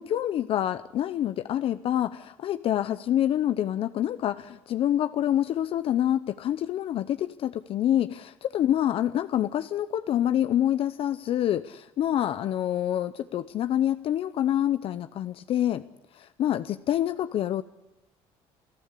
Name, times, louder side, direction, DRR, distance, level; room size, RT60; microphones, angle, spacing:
voice 1, 0.0-15.8 16.1-17.6, left 11 dB, 55° left, 12 dB, 0.7 m, -27 dB
28.0 x 14.5 x 8.4 m, 0.89 s
cardioid pair, 120°, 11 cm